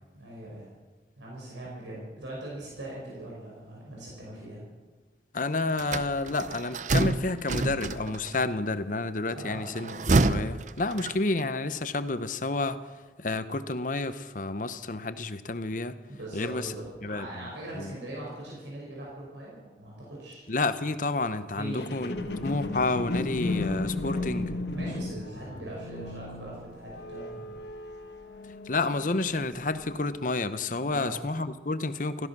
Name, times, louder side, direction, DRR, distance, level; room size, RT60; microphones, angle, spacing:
voice 1, 0.1-0.7 1.2-4.6 9.3-9.7 16.1-20.4 21.6-21.9 24.7-27.6 30.8-31.1, right 1 dB, 85° right, -4 dB, 5.6 m, -41 dB
voice 2, 5.3-16.0 16.3-16.7 17.0-17.9 20.5-22.1 22.4-24.5 28.4-32.3, left 3 dB, 45° left, 12 dB, 0.8 m, -30 dB
sound 1, 5.8-8.4 9.7-11.5, right 2 dB, 40° right, 0.6 m, -27 dB
sound 2, 21.8-29.2 29.8-29.9, left 2 dB, 70° left, 1.5 m, -34 dB
16.5 x 14.5 x 6.1 m, 1.3 s
head